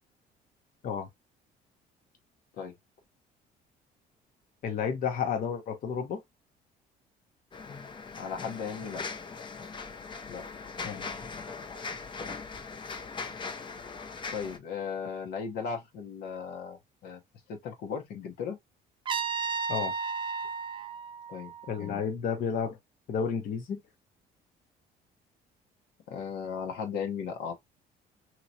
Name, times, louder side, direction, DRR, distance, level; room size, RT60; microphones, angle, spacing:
voice 1, 4.6-6.2 10.8-11.1 19.7-19.9 21.7-22.8 23.1-23.8, left 6 dB, 55° left, 0.8 m, -31 dB
sound 1, 7.5-14.6, left 4 dB, 30° left, 0.6 m, -40 dB
voice 2, 8.1-9.1 10.3-10.4 14.3-17.2 17.5-18.6 21.3-21.5 21.8-22.0 26.1-27.5, left 6 dB, 75° left, 1.0 m, -36 dB
Trumpet, 19.1-22.0, right 5 dB, 30° right, 0.4 m, -34 dB
2.9 x 2.9 x 2.7 m
cardioid pair, 110°, 17 cm